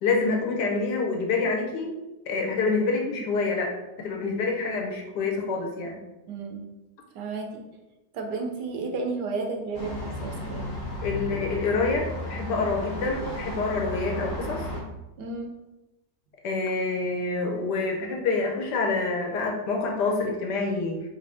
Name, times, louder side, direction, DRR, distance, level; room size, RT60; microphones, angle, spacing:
voice 1, 0.0-1.9 2.3-3.7 4.0-6.0 11.0-14.6 16.4-21.0, left 3 dB, 75° left, 0 dB, 1.2 m, -27 dB
voice 2, 6.3-6.6 7.1-7.7 8.1-10.6 15.2-15.5, right 3 dB, 75° right, 3 dB, 1.2 m, -32 dB
sound 1, 9.7-14.8, left 1 dB, 55° left, 1.2 m, -34 dB
4.2 x 2.6 x 3.3 m, 1.0 s
omnidirectional pair, 1.9 m